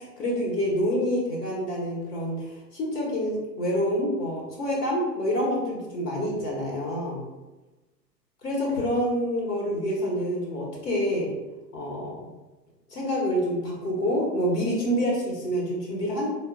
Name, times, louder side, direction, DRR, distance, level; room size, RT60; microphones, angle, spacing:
voice 1, 0.0-2.4 2.7-7.2 8.4-11.3 11.7-12.1 12.9-16.3, equal, 70° left, -3 dB, 1.1 m, -27 dB
4.0 x 2.2 x 2.4 m, 1.1 s
figure-of-eight pair, 110°, 50 cm